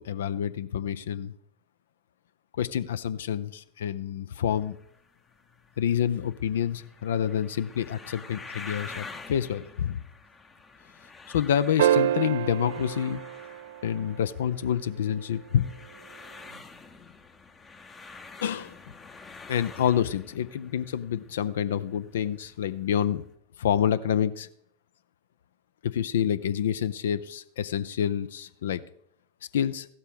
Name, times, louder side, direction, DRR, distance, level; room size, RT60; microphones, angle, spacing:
voice 1, 0.0-1.3 2.6-4.8 5.8-10.0 11.3-13.2 13.8-15.7 18.4-18.8 19.5-23.2 23.6-24.5 25.8-28.8 29.5-29.9, left 9 dB, 60° left, 18 dB, 0.4 m, -28 dB
sound 1, 4.5-23.3, left 4 dB, 20° left, 0.8 m, -48 dB
sound 2, 11.8-14.3 16.5-16.6, right 11 dB, 60° right, 0.4 m, -27 dB
15.0 x 12.5 x 3.5 m, 0.71 s
figure-of-eight pair, 90°, 0 cm